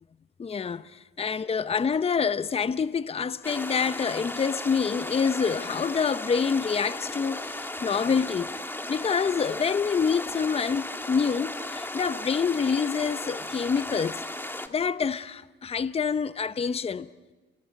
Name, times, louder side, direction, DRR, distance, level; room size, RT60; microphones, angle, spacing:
voice 1, 0.4-8.5 8.9-14.2 14.7-17.1, left 6 dB, 30° left, 0.8 m, -27 dB
sound 1, 3.4-14.7, left 1 dB, 10° left, 1.9 m, -35 dB
28.0 x 20.5 x 9.2 m
cardioid pair, 90°, 20 cm